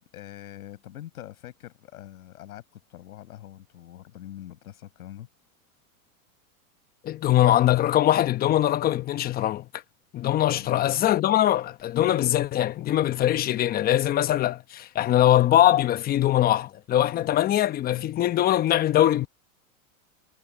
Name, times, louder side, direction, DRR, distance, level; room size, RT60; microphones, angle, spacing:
voice 1, 0.1-5.3 10.5-11.1 17.1-17.4, left 12 dB, 80° left, 5.2 m, -44 dB
voice 2, 7.0-9.7 10.1-19.3, left 12 dB, 20° left, 1.0 m, -22 dB
supercardioid pair, 140°, 43 cm